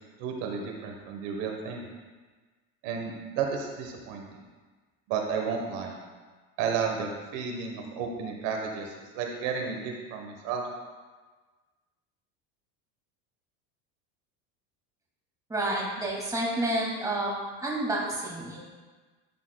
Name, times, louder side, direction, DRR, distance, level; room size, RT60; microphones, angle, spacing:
voice 1, 0.2-1.8 2.8-4.3 5.1-6.0 6.6-10.6, right 6 dB, 70° right, 2 dB, 1.3 m, -32 dB
voice 2, 15.5-17.3 17.6-18.6, right 1 dB, 10° right, -3 dB, 2.2 m, -29 dB
12.0 x 8.2 x 2.3 m, 1.3 s
cardioid pair, 135°, 38 cm